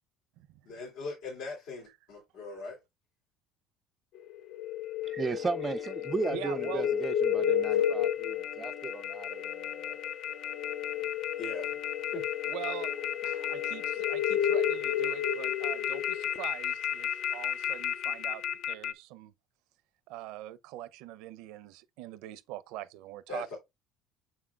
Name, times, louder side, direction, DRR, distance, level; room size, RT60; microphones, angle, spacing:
voice 1, 0.6-2.8 11.4-11.7 12.1-12.2 23.3-23.6, left 3 dB, 85° left, 3.0 m, -40 dB
sound 1, 4.1-18.9, left 9 dB, 60° left, 0.5 m, -31 dB
sound 2, 5.0-13.9, left 5 dB, 35° left, 0.8 m, -52 dB
voice 2, 5.0-9.5 9.9-10.0, right 4 dB, 25° right, 0.3 m, -35 dB
voice 3, 6.3-6.9 12.5-19.3 20.1-23.5, right 14 dB, 80° right, 0.6 m, -43 dB
6.8 x 6.1 x 2.4 m
supercardioid pair, 105°, 0 cm